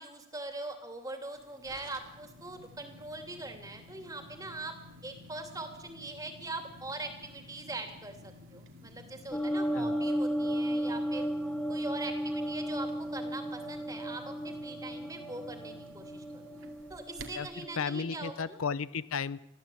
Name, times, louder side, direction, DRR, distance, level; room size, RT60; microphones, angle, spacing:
voice 1, 0.0-4.8 5.0-11.3 11.7-16.4 16.9-18.6, right 2 dB, 15° right, 6 dB, 2.8 m, -42 dB
sound 1, 1.4-17.6, left 1 dB, 65° right, 2.4 m, -52 dB
sound 2, 9.3-18.3, equal, 5° left, 1.0 m, -34 dB
voice 2, 17.3-19.4, left 5 dB, 80° left, 17 dB, 0.7 m, -34 dB
22.5 x 15.0 x 8.5 m, 0.85 s
head